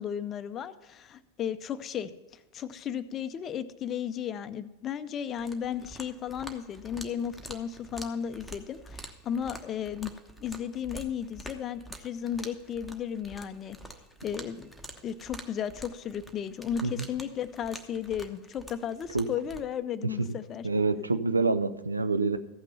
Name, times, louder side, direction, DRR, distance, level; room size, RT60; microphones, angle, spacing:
voice 1, 0.0-10.1 10.4-13.8 14.2-14.7 15.0-20.7, left 8 dB, 30° left, 14 dB, 0.5 m, -34 dB
sound 1, 5.3-19.6, equal, ahead, 1.0 m, -47 dB
voice 2, 20.6-22.4, right 3 dB, 80° right, 10 dB, 0.5 m, -27 dB
14.5 x 6.0 x 5.6 m, 1.1 s
figure-of-eight pair, 90°, 0 cm